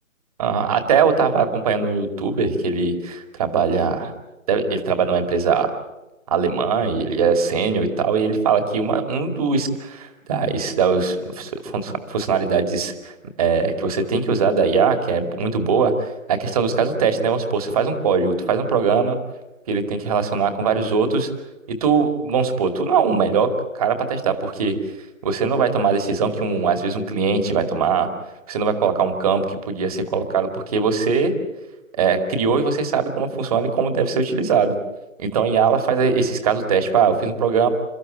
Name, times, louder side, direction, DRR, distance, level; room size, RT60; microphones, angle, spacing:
voice 1, 0.4-4.1 4.5-5.8 6.3-13.1 13.4-19.2 19.7-21.3 21.8-23.5 23.7-24.7 25.2-28.1 28.5-31.3 32.0-34.7 35.2-37.7, right 5 dB, 30° right, 7 dB, 2.5 m, -21 dB
29.0 x 14.0 x 9.2 m, 1.0 s
figure-of-eight pair, 145°, 40 cm